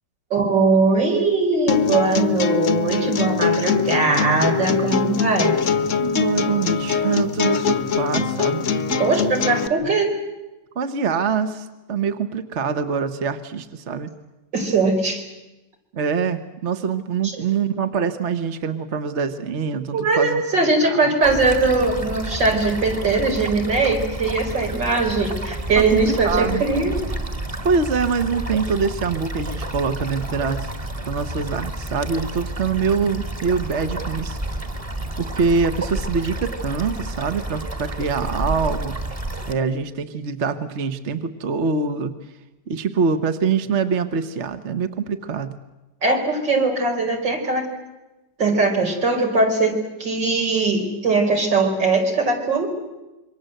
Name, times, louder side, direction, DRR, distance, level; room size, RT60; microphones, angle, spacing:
voice 1, 0.3-5.6 9.0-10.2 14.5-15.2 17.2-17.4 19.9-26.9 46.0-47.7 48.4-52.7, right 3 dB, 80° right, 2 dB, 5.5 m, -20 dB
sound 1, 1.7-9.7, left 6 dB, 45° left, 1.4 m, -22 dB
voice 2, 6.0-8.6 9.8-9.9 10.7-14.1 15.9-21.1 25.8-26.7 27.6-30.7 31.0-34.4 35.2-39.0 39.5-42.1 42.7-45.5, right 5 dB, 45° right, 9 dB, 1.4 m, -24 dB
sound 2, 21.2-39.5, right 1 dB, 20° right, 1.7 m, -30 dB
27.0 x 24.0 x 7.9 m, 1.0 s
omnidirectional pair, 1.9 m